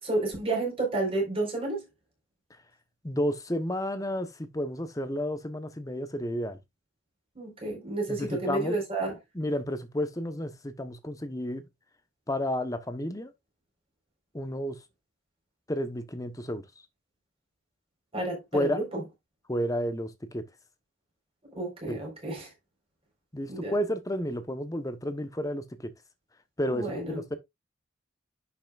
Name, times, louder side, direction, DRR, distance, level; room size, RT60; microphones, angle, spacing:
voice 1, 0.0-1.8 7.4-9.1 18.1-19.0 21.6-22.5 23.5-23.7 26.7-27.4, right 2 dB, 30° right, 4.4 m, -31 dB
voice 2, 3.0-6.6 8.1-8.8 9.3-11.6 12.3-13.3 14.3-14.8 15.7-16.6 18.5-18.8 19.5-20.4 21.9-22.0 23.3-25.9 26.6-27.4, equal, 20° left, 1.0 m, -31 dB
10.5 x 5.8 x 2.4 m
head